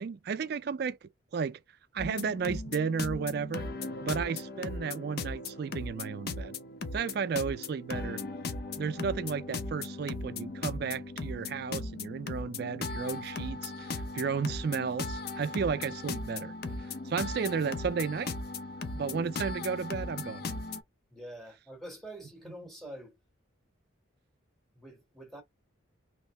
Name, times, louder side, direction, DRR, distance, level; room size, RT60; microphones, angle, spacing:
voice 1, 0.0-1.6 1.9-3.7 4.0-6.6 6.9-8.2 8.8-16.5 16.8-18.3 18.9-20.6, right 6 dB, 50° right, 0.3 m, -33 dB
sound 1, 2.0-20.8, left 3 dB, 50° left, 0.6 m, -38 dB
voice 2, 21.1-23.2 24.7-25.4, right 1 dB, ahead, 1.6 m, -46 dB
3.1 x 2.6 x 3.1 m
head